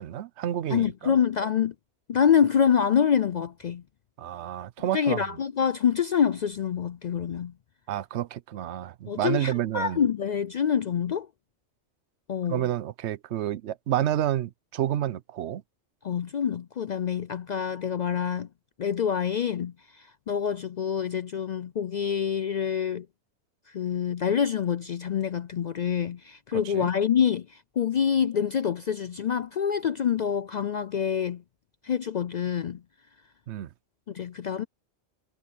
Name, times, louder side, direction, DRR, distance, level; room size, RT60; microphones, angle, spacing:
voice 1, 0.0-1.1 4.2-5.2 7.9-10.0 12.5-15.6 26.6-26.9 33.5-33.7, right 11 dB, 75° right, 0.9 m, -29 dB
voice 2, 0.7-1.7 2.1-3.8 4.8-7.5 9.1-11.3 12.3-12.6 16.0-18.5 18.8-19.7 20.3-23.1 23.7-27.5 27.8-31.4 31.8-32.8 34.1-34.6, left 8 dB, 60° left, 0.4 m, -26 dB
omnidirectional pair, 1.2 m